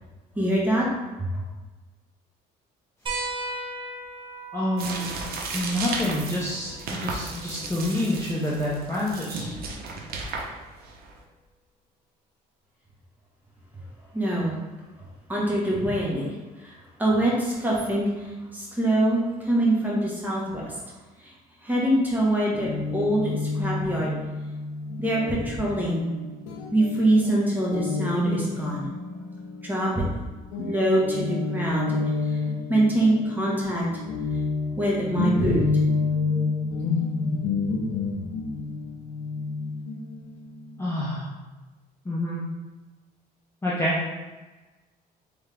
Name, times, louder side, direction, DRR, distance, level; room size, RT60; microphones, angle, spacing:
voice 1, 0.3-0.9 14.1-14.5 15.3-16.3 16.6-20.7 21.6-24.1 25.0-26.0 26.7-28.9 29.6-29.9 30.6-31.9 32.7-33.8 34.8-35.6, right 1 dB, 10° right, -5 dB, 1.4 m, -24 dB
sound 1, 3.1-8.1 9.7-9.8 11.4-11.5, right 2 dB, 30° right, 1.0 m, -38 dB
voice 2, 4.5-5.2 5.5-9.5 40.8-41.3 42.0-42.4 43.6-44.0, left 1 dB, 15° left, -7 dB, 0.8 m, -27 dB
sound 2, 4.8-11.2, right 3 dB, 65° right, 0.8 m, -35 dB
Guitar, 22.5-30.2 30.5-41.0, left 4 dB, 90° left, 0.5 m, -29 dB
3.6 x 3.3 x 3.4 m, 1.2 s
cardioid pair, 110°, 17 cm